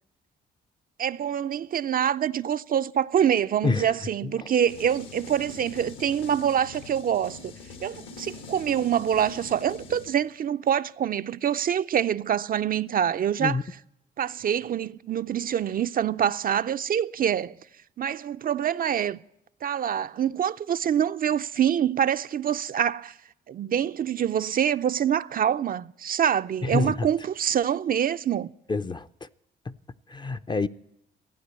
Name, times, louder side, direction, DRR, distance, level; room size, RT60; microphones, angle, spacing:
voice 1, 1.0-7.5 7.8-13.6 14.2-17.6 18.0-19.2 19.6-23.1 23.5-28.5, right 9 dB, 45° right, 0.5 m, -25 dB
sound 1, 4.7-10.1, left 3 dB, 75° left, 1.8 m, -43 dB
voice 2, 26.6-27.1 28.7-29.1 29.7-29.8 30.1-30.7, left 4 dB, 20° left, 0.5 m, -26 dB
14.5 x 9.6 x 8.2 m
cardioid pair, 90°, 20 cm